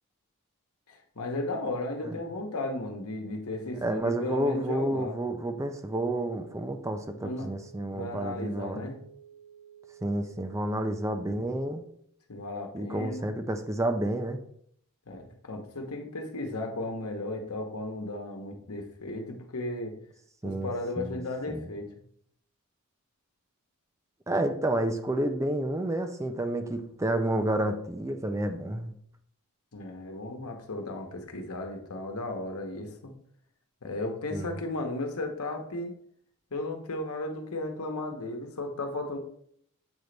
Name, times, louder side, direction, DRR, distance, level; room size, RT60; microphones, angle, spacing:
voice 1, 0.9-5.2 7.2-7.5 7.9-9.0 12.3-13.3 15.1-19.9 20.4-21.9 29.7-33.1 33.8-35.9 36.5-39.2, left 2 dB, 75° left, 4 dB, 1.1 m, -35 dB
sound 1, 3.5-11.3, right 9 dB, 50° right, 0.8 m, -52 dB
voice 2, 3.8-8.9 10.0-11.8 12.7-14.4 20.4-21.2 21.5-21.7 24.3-28.9 34.3-34.5, right 1 dB, 15° right, 7 dB, 0.4 m, -30 dB
8.0 x 3.3 x 3.9 m, 0.67 s
head